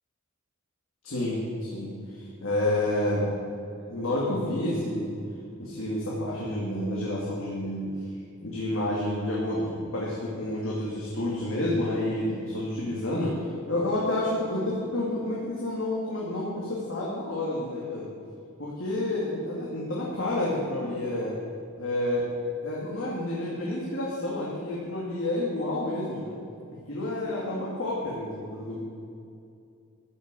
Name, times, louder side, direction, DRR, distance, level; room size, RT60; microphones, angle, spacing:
voice 1, 1.0-3.3 3.9-5.2 5.6-8.1 8.4-18.1 18.6-21.4 21.8-22.3 22.6-26.4 26.9-28.8, left 1 dB, 65° left, -5 dB, 2.3 m, -29 dB
13.5 x 6.8 x 8.3 m, 2.5 s
head